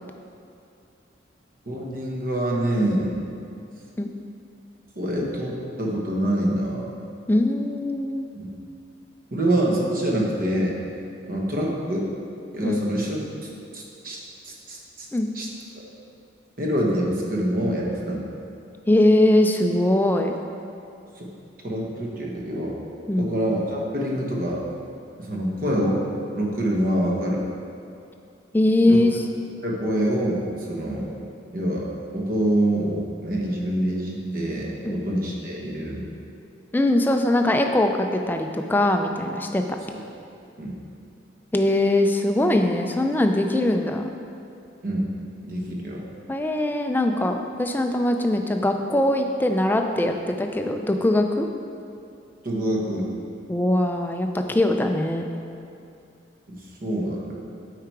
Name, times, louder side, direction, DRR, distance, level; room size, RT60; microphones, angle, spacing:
voice 1, 1.7-3.1 5.0-6.9 8.3-8.5 9.3-10.7 11.3-12.1 12.5-13.2 13.7-14.2 14.4-15.1 15.3-15.5 16.6-18.2 21.2-21.3 21.6-22.8 23.1-24.6 25.2-26.0 26.3-27.4 28.9-29.0 29.6-30.4 30.7-31.2 31.5-36.1 39.9-40.0 40.6-40.8 44.8-45.0 45.4-46.0 52.4-53.1 56.5-57.3, right 1 dB, 45° right, -2 dB, 1.1 m, -25 dB
voice 2, 7.3-8.3 12.6-12.8 15.1-15.3 18.9-20.3 23.1-23.4 28.5-29.2 34.8-35.0 36.7-39.6 41.5-44.1 46.3-51.5 53.5-55.3, left 1 dB, 10° left, 4 dB, 0.3 m, -21 dB
8.4 x 4.7 x 4.6 m, 2.5 s
head